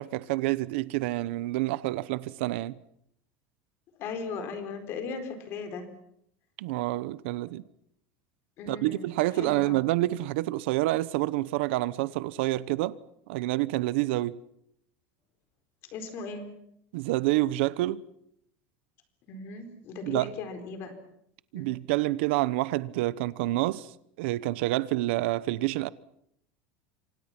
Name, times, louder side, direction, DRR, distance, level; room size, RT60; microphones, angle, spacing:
voice 1, 0.0-2.8 6.6-7.6 8.7-13.0 13.3-14.4 16.9-18.0 20.1-20.3 21.5-23.9 24.2-25.9, right 17 dB, 65° right, 0.9 m, -28 dB
voice 2, 4.0-5.9 8.6-9.8 15.9-16.5 19.3-21.0 21.5-21.7, left 4 dB, 35° left, 4.3 m, -38 dB
28.0 x 26.0 x 6.0 m
cardioid pair, 180°, 7 cm